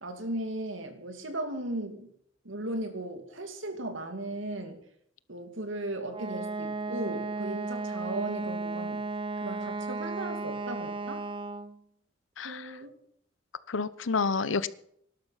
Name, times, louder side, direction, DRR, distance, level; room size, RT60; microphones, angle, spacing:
voice 1, 0.0-2.1 2.4-4.8 5.3-9.0 9.4-11.2 12.4-12.9, right 1 dB, 80° right, 6 dB, 2.6 m, -36 dB
Wind instrument woodwind instrument, 6.1-11.8, right 3 dB, 25° right, 0.8 m, -34 dB
voice 2, 12.4-12.7 13.7-14.7, left 4 dB, 80° left, 16 dB, 0.8 m, -29 dB
18.5 x 12.0 x 5.8 m, 0.70 s
head